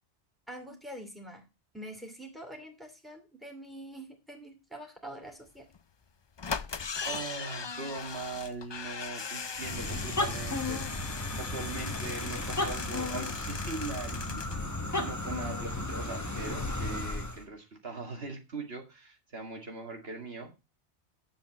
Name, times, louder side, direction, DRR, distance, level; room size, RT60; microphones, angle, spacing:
voice 1, 0.5-1.4 1.7-5.7, right 1 dB, ahead, 3 dB, 2.7 m, -45 dB
sound 1, 5.7-5.8 6.4-14.6 14.9-15.0 15.2-15.3, left 5 dB, 40° left, 0.4 m, -39 dB
voice 2, 7.0-10.8 11.3-20.5, right 3 dB, 60° right, 3 dB, 2.2 m, -41 dB
sound 2, 9.6-17.4, left 2 dB, 15° left, 1.2 m, -34 dB
9.2 x 7.7 x 5.4 m, 0.27 s
omnidirectional pair, 1.2 m